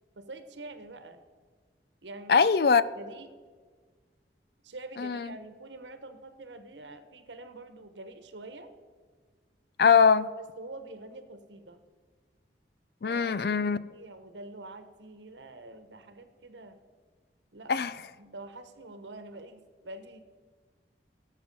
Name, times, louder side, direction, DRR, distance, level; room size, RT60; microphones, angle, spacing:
voice 1, 0.2-1.2 2.0-2.5 2.9-3.3 4.6-8.7 10.4-11.8 13.0-13.4 13.9-16.8 17.5-17.8 18.2-20.2, right 2 dB, 90° right, 1.1 m, -46 dB
voice 2, 2.3-2.8 5.0-5.3 9.8-10.3 13.0-13.8 17.7-17.9, left 6 dB, 60° left, 0.4 m, -22 dB
17.0 x 7.4 x 5.4 m
head